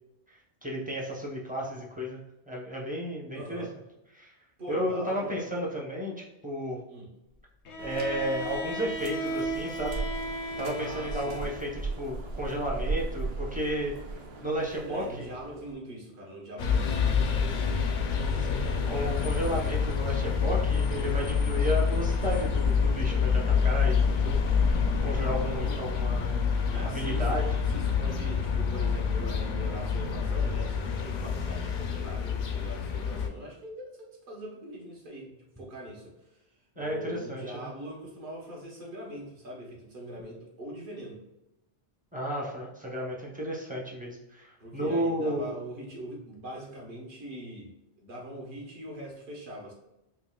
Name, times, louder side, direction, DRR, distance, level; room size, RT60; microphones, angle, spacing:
voice 1, 0.3-3.7 4.1-4.3 4.7-6.8 7.8-10.3 10.6-14.0 14.4-15.2 18.1-24.4 24.7-26.4 26.8-27.4 36.8-37.7 42.1-45.6, equal, 10° right, -2 dB, 0.7 m, -33 dB
voice 2, 3.3-3.7 4.6-5.4 6.9-7.1 10.8-11.5 14.8-17.7 26.7-33.9 34.3-36.4 36.7-41.2 44.6-49.7, equal, 50° right, -3 dB, 1.3 m, -42 dB
Bowed string instrument, 7.6-11.9, right 1 dB, 90° left, 0.9 m, -36 dB
sound 1, 7.8-15.7, right 3 dB, 70° right, 1.0 m, -38 dB
sound 2, 16.6-33.3, left 6 dB, 55° left, 0.6 m, -27 dB
5.6 x 2.7 x 2.3 m, 0.91 s
omnidirectional pair, 1.1 m